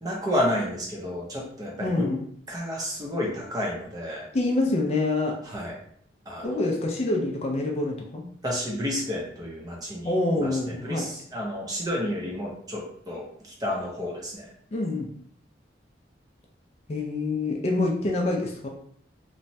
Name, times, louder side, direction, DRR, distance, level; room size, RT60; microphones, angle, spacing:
voice 1, 0.0-2.1 2.5-4.3 5.5-5.7 6.3-6.6 8.4-10.1 10.4-14.5, left 1 dB, 20° right, -3 dB, 0.6 m, -31 dB
voice 2, 1.8-2.3 4.3-5.4 6.4-8.3 10.0-11.1 14.7-15.1 16.9-18.7, left 2 dB, 35° left, 0 dB, 0.3 m, -26 dB
3.0 x 2.2 x 2.6 m, 0.63 s
head